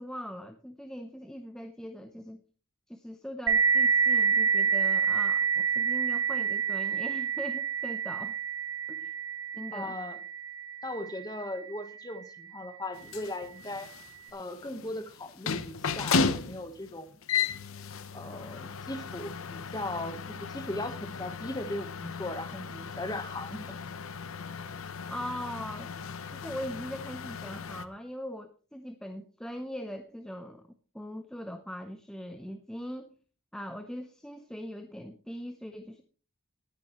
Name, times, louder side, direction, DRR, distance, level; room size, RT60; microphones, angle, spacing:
voice 1, 0.0-2.4 2.9-8.4 8.9-9.1 9.5-10.0 25.1-25.9 26.4-30.7 30.9-33.1 33.5-36.0, equal, 5° left, 6 dB, 0.7 m, -40 dB
sound 1, 3.5-12.7, right 6 dB, 70° right, 1.1 m, -28 dB
voice 2, 9.7-10.2 10.8-13.9 14.3-17.1 18.1-23.8, left 1 dB, 20° left, 9 dB, 1.2 m, -38 dB
sound 2, 12.9-27.8, left 5 dB, 80° left, 0.9 m, -35 dB
19.0 x 9.9 x 3.1 m, 0.38 s
head